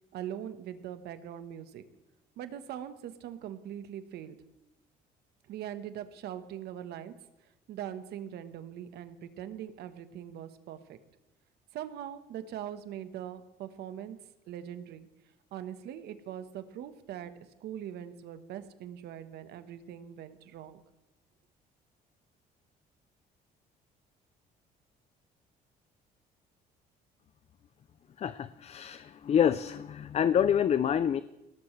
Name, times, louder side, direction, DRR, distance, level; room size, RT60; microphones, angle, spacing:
voice 1, 0.1-1.8 2.4-4.4 5.5-7.1 7.7-11.0 11.7-14.2 14.5-15.1 15.5-17.3 17.6-20.8, right 10 dB, 75° right, 10 dB, 1.3 m, -41 dB
voice 2, 28.2-31.2, left 9 dB, 40° left, 14 dB, 0.5 m, -27 dB
21.0 x 18.0 x 3.3 m, 0.99 s
cardioid pair, 110°, 17 cm